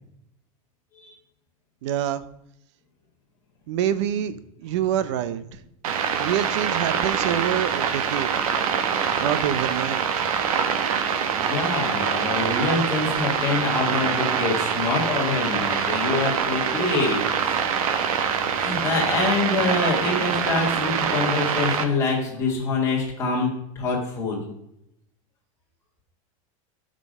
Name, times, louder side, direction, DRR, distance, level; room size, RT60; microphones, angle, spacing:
voice 1, 1.8-2.2 3.7-4.3 4.6-5.6 6.2-8.3 9.2-10.3, right 10 dB, 55° right, 13 dB, 0.7 m, -26 dB
sound 1, 5.8-21.8, right 7 dB, 80° right, 1.3 m, -24 dB
voice 2, 11.4-17.6 18.5-23.5 23.8-24.4, left 3 dB, 15° left, -5 dB, 2.2 m, -25 dB
12.0 x 5.3 x 5.4 m, 0.78 s
supercardioid pair, 180°, 18 cm